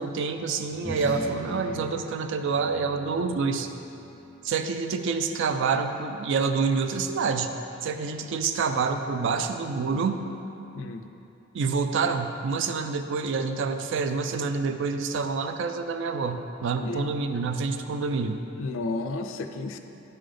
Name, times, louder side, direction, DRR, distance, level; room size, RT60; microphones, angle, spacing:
voice 1, 0.0-3.7 4.4-7.5 7.8-10.3 11.5-18.4, right 4 dB, 65° right, 7 dB, 0.4 m, -27 dB
sound 1, 0.7-5.5, equal, 15° right, 1.0 m, -41 dB
voice 2, 10.7-11.1 16.8-17.1 18.6-19.8, left 3 dB, 65° left, 7 dB, 0.4 m, -32 dB
9.2 x 3.4 x 3.7 m, 2.9 s
head